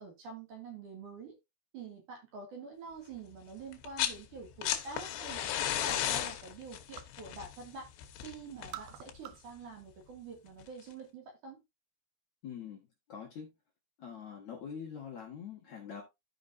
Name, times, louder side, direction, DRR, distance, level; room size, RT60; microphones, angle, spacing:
voice 1, 0.0-1.4 1.7-7.9 8.2-11.6, right 4 dB, 55° right, 3.4 m, -46 dB
sound 1, 3.7-4.2 4.5-9.3 10.6-10.7, left 11 dB, 90° left, 3.2 m, -35 dB
sound 2, 4.7-5.2 5.6-7.3 7.6-8.2 8.5-9.6 9.9-10.7, right 14 dB, 85° right, 2.0 m, -50 dB
voice 2, 12.4-13.5 14.0-16.0, left 7 dB, 55° left, 2.3 m, -44 dB
14.0 x 5.1 x 2.6 m
omnidirectional pair, 4.8 m